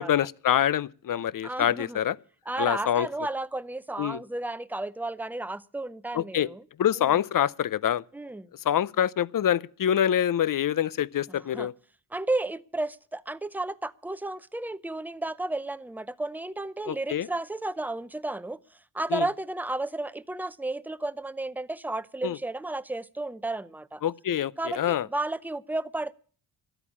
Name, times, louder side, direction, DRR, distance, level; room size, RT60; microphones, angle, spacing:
voice 1, 0.0-2.2 2.6-3.1 4.0-4.2 6.1-6.5 6.8-8.0 8.6-11.7 16.9-17.3 19.1-19.3 22.2-22.4 24.0-25.1, left 10 dB, 50° left, 0.6 m, -25 dB
voice 2, 1.4-2.0 2.5-6.6 8.1-8.5 11.3-11.7 12.1-18.6 18.9-24.0 24.6-26.1, right 2 dB, 5° right, 0.6 m, -33 dB
13.0 x 9.1 x 8.4 m
cardioid pair, 65°, 42 cm